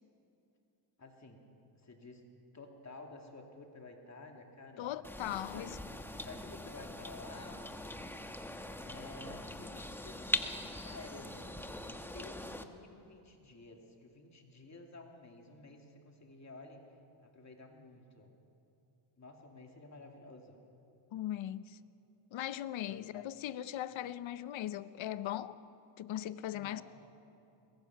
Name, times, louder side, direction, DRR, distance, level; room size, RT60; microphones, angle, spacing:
voice 1, 1.0-1.4 1.7-2.2 2.5-5.1 5.5-7.7 8.8-11.8 12.1-17.0 17.2-18.4 19.2-20.6 22.9-23.1 26.5-26.8, left 2 dB, 35° left, 2.5 m, -52 dB
voice 2, 4.8-5.8 21.1-21.8 22.3-25.6 26.0-26.8, left 12 dB, 70° left, 0.8 m, -39 dB
sound 1, 5.0-12.6, left 1 dB, 5° left, 1.0 m, -42 dB
22.0 x 20.5 x 5.9 m
cardioid pair, 100°, 49 cm